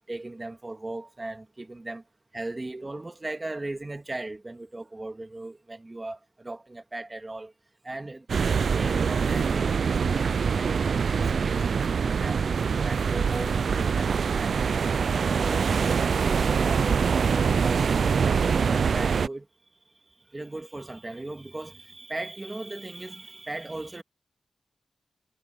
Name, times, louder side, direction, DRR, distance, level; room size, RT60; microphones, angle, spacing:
voice 1, 0.1-2.0 2.3-7.5 7.8-8.3 8.7-11.6 11.9-14.1 14.4-14.8 15.2-17.8 18.4-19.5 20.3-24.0, right 2 dB, 25° right, 2.5 m, -38 dB
sound 1, 8.3-19.3, right 6 dB, 70° right, 0.3 m, -24 dB
wide cardioid pair, 105°, 0 cm